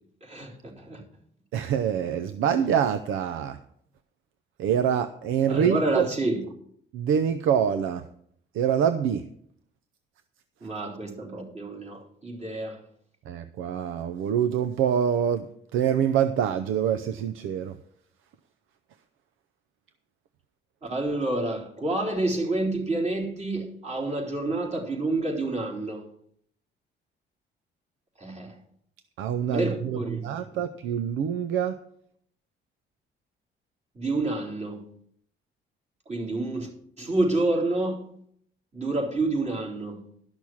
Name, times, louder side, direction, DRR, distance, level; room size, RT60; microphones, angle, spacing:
voice 1, 0.2-1.0 5.5-6.4 10.6-12.8 20.8-26.1 28.2-28.6 29.5-30.2 33.9-34.9 36.1-36.7 37.0-38.0 38.7-40.0, right 2 dB, 35° right, 3.7 m, -28 dB
voice 2, 1.5-3.6 4.6-6.1 6.9-8.0 8.6-9.2 13.3-15.5 15.7-17.7 29.2-30.0 30.2-31.8, right 8 dB, 90° right, 0.6 m, -25 dB
12.0 x 6.2 x 7.2 m
cardioid pair, 90°, 20 cm